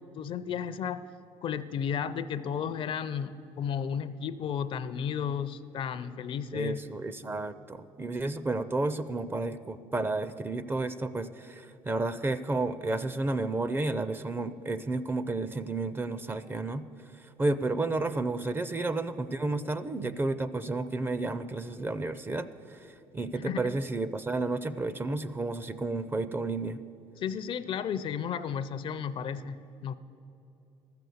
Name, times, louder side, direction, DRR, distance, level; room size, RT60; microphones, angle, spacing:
voice 1, 0.1-1.0 1.4-6.8 23.4-23.6 27.2-29.9, left 7 dB, 50° left, 14 dB, 0.5 m, -33 dB
voice 2, 6.5-16.8 17.1-26.8, right 2 dB, 20° right, 13 dB, 0.5 m, -32 dB
13.0 x 6.9 x 7.8 m, 2.9 s
cardioid pair, 100°, 11 cm